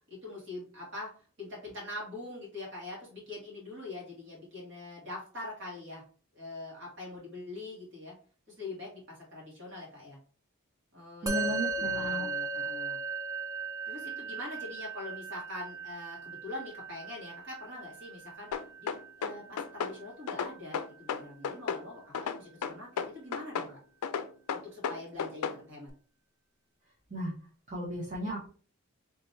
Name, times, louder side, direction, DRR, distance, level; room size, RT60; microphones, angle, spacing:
voice 1, 0.1-1.1 1.4-6.0 6.3-8.1 8.6-9.0 9.3-10.2 10.9-13.0 13.9-18.5 18.8-18.9 19.2-23.8 24.5-25.9, left 2 dB, 55° right, -4 dB, 2.0 m, -43 dB
voice 2, 11.2-12.3 27.1-27.3 27.7-28.5, right 1 dB, 30° right, -7 dB, 0.8 m, -35 dB
Musical instrument, 11.3-20.8, right 3 dB, 15° right, 0.3 m, -37 dB
sound 1, 18.5-20.0 20.3-21.8 22.1-23.7 24.0-25.6, left 6 dB, 90° left, 0.4 m, -33 dB
3.3 x 2.9 x 3.3 m, 0.41 s
head